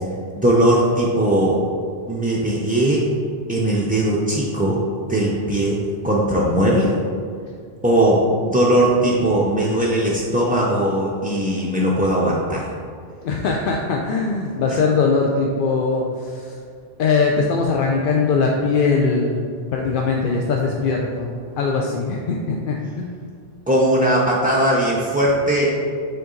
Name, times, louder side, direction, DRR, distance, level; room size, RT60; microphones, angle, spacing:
voice 1, 0.3-1.6 2.1-3.1 3.5-6.9 7.8-12.7 23.7-25.7, right 1 dB, 15° right, -5 dB, 0.3 m, -19 dB
voice 2, 13.2-16.6 17.0-23.1, left 4 dB, 65° left, 0 dB, 0.6 m, -21 dB
6.7 x 4.0 x 3.8 m, 2.2 s
omnidirectional pair, 1.1 m